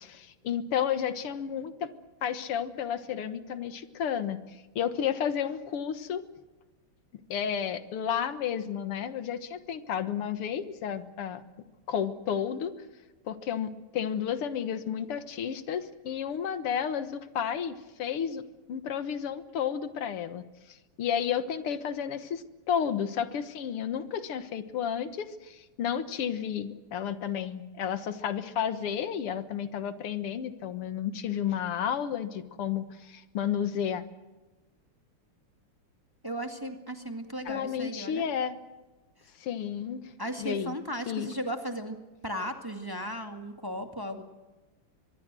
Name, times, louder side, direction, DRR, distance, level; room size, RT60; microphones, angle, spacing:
voice 1, 0.0-1.9 2.2-6.2 7.3-11.4 11.9-12.7 13.3-18.4 18.7-34.0 37.5-38.5 39.4-40.1 40.4-40.7 41.1-41.3, left 8 dB, 90° left, 12 dB, 2.3 m, -32 dB
voice 2, 36.2-38.2 39.2-39.3 40.2-44.2, equal, 10° right, 5 dB, 1.9 m, -36 dB
24.5 x 21.5 x 7.6 m, 1.2 s
omnidirectional pair, 2.4 m